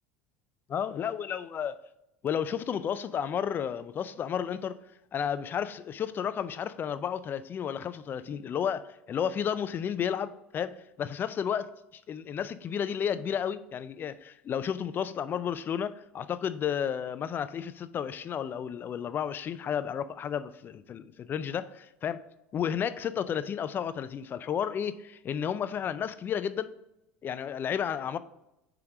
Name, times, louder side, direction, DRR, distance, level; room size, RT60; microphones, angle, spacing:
voice 1, 0.7-1.7 2.2-4.8 5.1-22.2 22.5-26.7 27.2-28.2, left 8 dB, 35° left, 0.4 m, -32 dB
5.2 x 4.6 x 4.8 m
hypercardioid pair, 75°, 6 cm